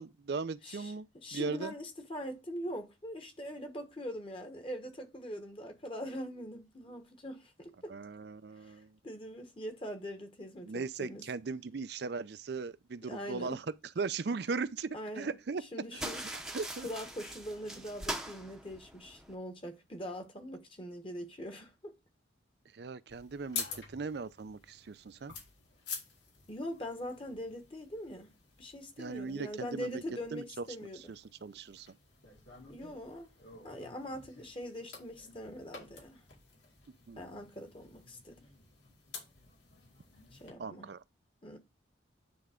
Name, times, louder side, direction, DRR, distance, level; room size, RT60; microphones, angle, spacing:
voice 1, 0.0-1.1 1.3-1.7 7.9-9.0 10.7-13.7 14.0-15.6 15.9-16.1 16.5-16.9 22.7-25.3 29.0-30.0 30.3-30.7 30.9-31.9 37.1-37.4 40.6-41.0, right 4 dB, 55° right, 0.4 m, -38 dB
voice 2, 1.2-7.7 8.6-8.8 9.0-11.2 13.1-13.6 14.9-15.3 15.7-16.2 16.8-21.9 26.5-28.3 28.6-31.2 32.7-33.3 33.6-36.2 37.2-38.3 40.3-40.9 41.4-41.6, equal, 25° left, 1.2 m, -42 dB
sound 1, 16.0-19.3, right 1 dB, 5° right, 0.7 m, -42 dB
sound 2, 23.1-40.5, left 5 dB, 65° left, 2.3 m, -49 dB
9.5 x 3.4 x 4.9 m
head